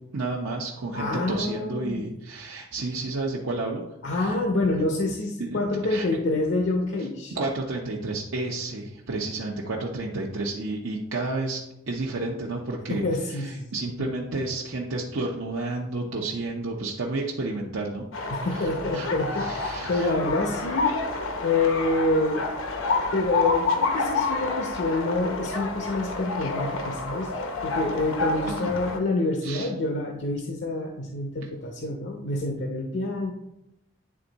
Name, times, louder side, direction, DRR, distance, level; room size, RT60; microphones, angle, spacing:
voice 1, 0.1-3.8 4.1-4.4 4.7-4.9 5.4-5.6 5.9-6.1 7.3-11.6 11.9-13.0 13.3-18.1 18.4-19.1 19.4-20.1 28.5-28.7 29.4-29.7, right 2 dB, 75° right, -2 dB, 0.8 m, -31 dB
voice 2, 0.9-2.0 4.0-7.3 12.9-13.7 14.0-14.1 18.3-21.0 21.4-22.5 23.1-33.3, left 2 dB, 60° left, 3 dB, 0.6 m, -27 dB
sound 1, 18.1-29.0, left 3 dB, 80° left, 0.9 m, -29 dB
9.7 x 3.5 x 4.0 m, 0.88 s
head